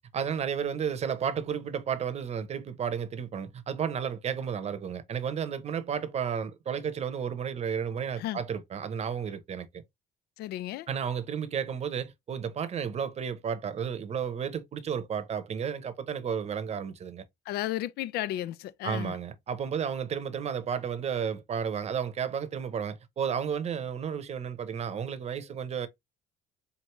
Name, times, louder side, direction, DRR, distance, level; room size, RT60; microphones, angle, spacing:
voice 1, 0.0-9.7 10.9-17.2 18.8-25.9, right 7 dB, 40° right, 0.8 m, -32 dB
voice 2, 10.4-10.9 17.5-19.2, left 14 dB, 70° left, 0.4 m, -33 dB
4.6 x 2.7 x 3.0 m
cardioid pair, 110°, 17 cm